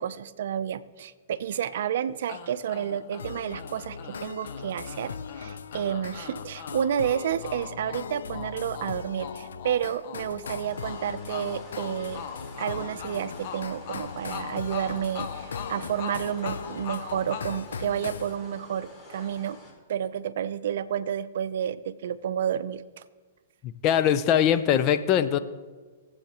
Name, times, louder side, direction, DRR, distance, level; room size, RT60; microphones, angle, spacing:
voice 1, 0.0-12.3 12.6-19.6 19.9-23.0, right 9 dB, 70° right, 14 dB, 0.5 m, -30 dB
sound 1, 2.3-18.5, left 8 dB, 55° left, 1.0 m, -41 dB
sound 2, 3.2-18.4, left 5 dB, 85° left, 0.5 m, -40 dB
sound 3, 10.7-19.7, left 1 dB, 20° left, 2.8 m, -48 dB
voice 2, 23.6-25.4, left 9 dB, 35° left, 11 dB, 0.6 m, -22 dB
19.0 x 7.9 x 3.0 m, 1.4 s
hypercardioid pair, 130°, 0 cm